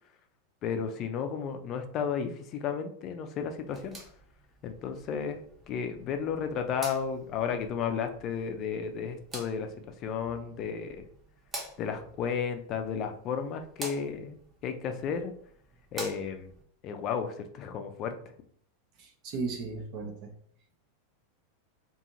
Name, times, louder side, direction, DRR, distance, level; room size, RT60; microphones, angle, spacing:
voice 1, 0.6-4.0 4.6-5.4 5.7-11.0 11.8-15.3 15.9-16.5 16.8-18.1, left 6 dB, 40° left, 6 dB, 0.4 m, -33 dB
sound 1, 3.6-16.6, right 1 dB, 20° right, 0.8 m, -47 dB
voice 2, 19.0-20.3, right 4 dB, 45° right, 2 dB, 0.5 m, -36 dB
2.6 x 2.4 x 2.8 m, 0.62 s
figure-of-eight pair, 90°, 0 cm